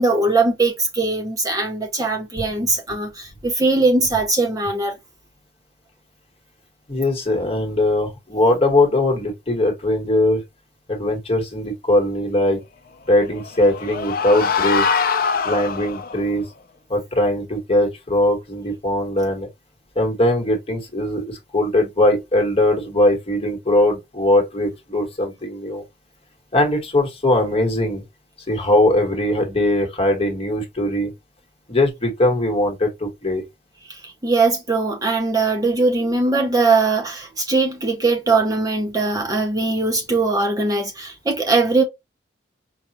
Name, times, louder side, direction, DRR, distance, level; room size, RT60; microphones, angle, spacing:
voice 1, 0.0-4.9 33.9-41.8, right 3 dB, 20° right, 0.6 m, -20 dB
voice 2, 6.9-10.4 10.9-12.6 13.1-15.0 15.4-16.4 16.9-19.5 19.9-25.8 26.5-28.0 28.5-31.1 31.7-33.4, left 1 dB, 30° left, 1.2 m, -20 dB
sound 1, 13.3-16.2, left 5 dB, 50° left, 0.5 m, -23 dB
4.8 x 2.3 x 2.8 m
head